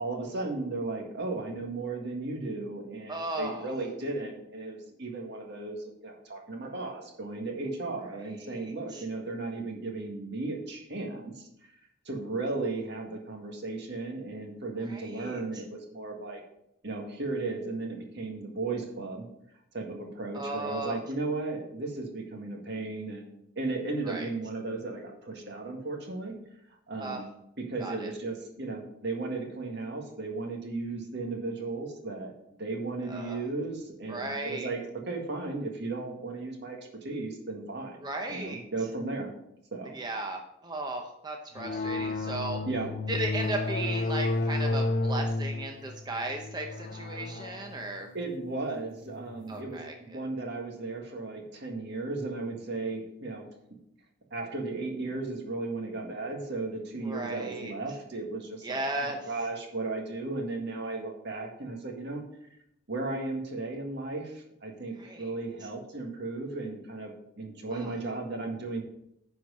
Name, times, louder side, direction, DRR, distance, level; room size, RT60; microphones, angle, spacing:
voice 1, 0.0-11.5 12.1-16.4 16.8-19.3 19.7-26.4 26.9-27.2 27.7-32.3 32.6-34.8 35.1-38.0 38.3-39.3 39.7-40.0 42.7-42.9 47.7-47.9 48.1-53.4 54.3-62.2 62.9-68.8, right 3 dB, 60° right, 2 dB, 1.8 m, -35 dB
voice 2, 3.1-3.7 8.4-9.0 14.8-15.6 20.3-21.0 24.1-24.3 27.0-27.2 27.8-28.1 33.1-33.5 34.1-34.7 38.0-38.6 39.9-42.6 43.1-48.1 49.5-50.3 57.0-57.7 58.6-59.3 65.0-65.3 65.6-65.7 67.7-67.9, right 2 dB, 20° right, 3 dB, 0.7 m, -36 dB
sound 1, 41.6-49.7, left 2 dB, 45° left, 0.6 m, -32 dB
9.9 x 4.6 x 5.5 m, 0.78 s
head